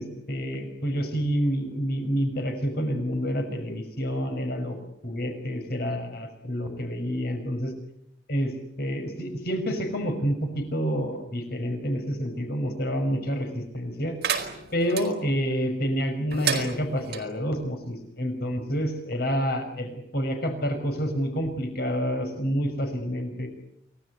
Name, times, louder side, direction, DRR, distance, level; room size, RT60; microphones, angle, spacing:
voice 1, 0.0-4.8 5.0-7.7 8.3-8.5 8.8-14.1 14.7-23.5, equal, 60° left, 6 dB, 5.8 m, -28 dB
sound 1, 14.2-15.1 16.3-17.2, right 7 dB, 60° right, 4.7 m, -30 dB
29.0 x 19.0 x 9.8 m, 0.76 s
head